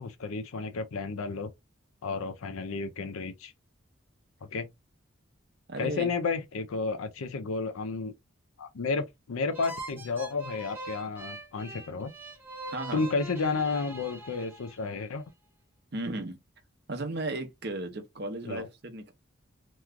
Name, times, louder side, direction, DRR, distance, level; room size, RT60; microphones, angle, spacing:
voice 1, 0.0-1.5 2.0-3.5 4.5-4.7 5.8-8.1 8.6-12.1 12.9-15.2 18.5-18.7, left 4 dB, 85° left, 0.5 m, -32 dB
voice 2, 5.7-6.1 12.6-13.1 15.9-16.4 16.9-19.1, right 2 dB, 50° right, 0.8 m, -35 dB
sound 1, 9.5-15.0, right 2 dB, 10° right, 0.7 m, -43 dB
3.0 x 2.3 x 3.6 m
head